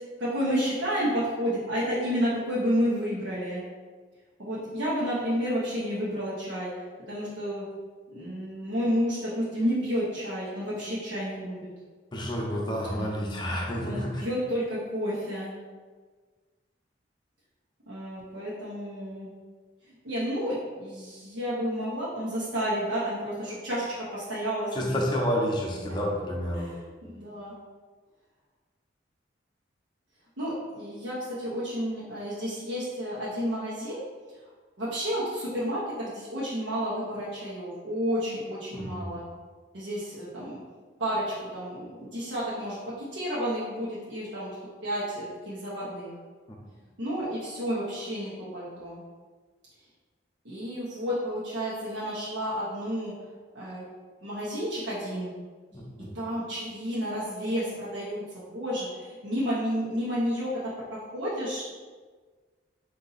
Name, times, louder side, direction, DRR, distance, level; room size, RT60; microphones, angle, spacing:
voice 1, 0.2-3.6 4.4-6.7 7.1-7.6 8.1-11.7 13.0-13.1 13.8-15.5 17.9-19.3 20.0-25.0 26.6-27.5 30.4-34.0 34.8-39.2 39.7-40.6 41.0-44.5 44.8-46.1 47.0-49.0 50.4-53.1 53.5-53.8 54.2-55.3 56.1-61.6, equal, 85° right, -8 dB, 1.0 m, -31 dB
voice 2, 12.1-14.3 24.7-26.7 38.7-39.1 55.7-56.1, equal, 25° left, -1 dB, 0.6 m, -30 dB
4.0 x 2.7 x 4.0 m, 1.4 s
head